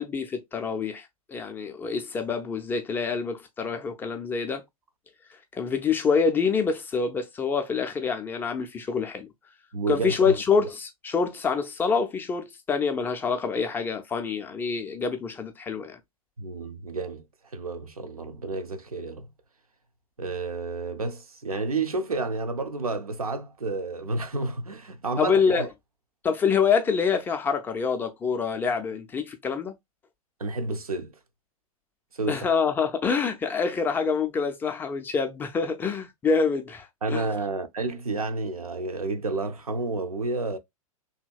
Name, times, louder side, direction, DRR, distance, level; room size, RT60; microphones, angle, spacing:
voice 1, 0.0-4.6 5.5-9.3 9.9-16.0 25.2-25.6 26.2-29.7 32.3-37.3, left 5 dB, 10° left, 0.3 m, -26 dB
voice 2, 9.7-10.3 16.4-17.2 17.5-19.3 20.2-25.7 30.4-31.1 32.1-32.4 37.0-40.6, right 3 dB, 80° right, 0.5 m, -30 dB
2.7 x 2.7 x 2.3 m
figure-of-eight pair, 100°, 19 cm